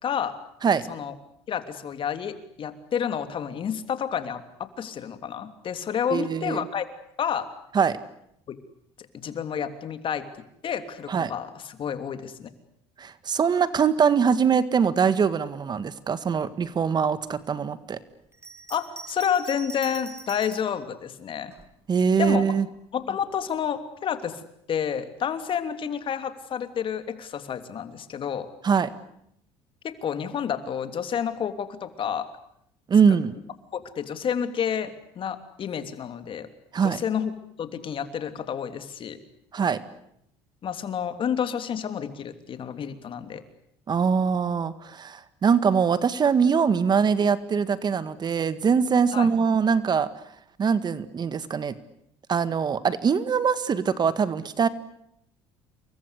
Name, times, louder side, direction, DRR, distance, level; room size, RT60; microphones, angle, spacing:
voice 1, 0.0-0.3 0.9-1.1 1.5-6.8 7.2-7.5 8.5-8.6 9.2-10.2 10.6-12.5 18.7-21.5 22.2-22.5 22.9-24.4 24.7-28.5 29.8-32.3 33.7-36.5 36.8-37.3 37.6-39.2 40.6-43.4 49.1-49.3, left 8 dB, 45° left, 9 dB, 3.1 m, -30 dB
voice 2, 6.1-6.6 7.7-8.0 11.1-11.3 13.0-18.0 21.9-22.7 28.6-28.9 32.9-33.4 36.7-37.0 39.5-39.8 43.9-50.1 50.6-51.7 52.3-54.7, right 6 dB, 35° right, 13 dB, 1.8 m, -23 dB
Bell, 18.3-20.8 21.5-22.4, right 4 dB, 20° right, 3.0 m, -43 dB
28.5 x 23.0 x 8.3 m, 0.75 s
supercardioid pair, 85°, 12 cm